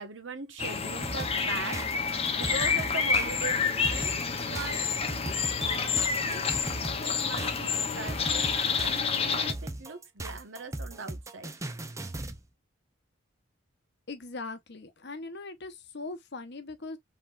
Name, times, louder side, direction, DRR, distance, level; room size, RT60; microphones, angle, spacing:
voice 1, 0.0-1.8 2.4-4.2 4.5-5.4 5.6-6.5 7.0-11.5, right 4 dB, 65° right, 1.2 m, -41 dB
sound 1, 0.6-9.5, left 5 dB, 30° left, 0.7 m, -29 dB
sound 2, 1.0-12.4, right 2 dB, 15° right, 0.5 m, -38 dB
voice 2, 14.1-17.0, left 3 dB, 55° left, 1.0 m, -40 dB
5.0 x 3.8 x 2.5 m
head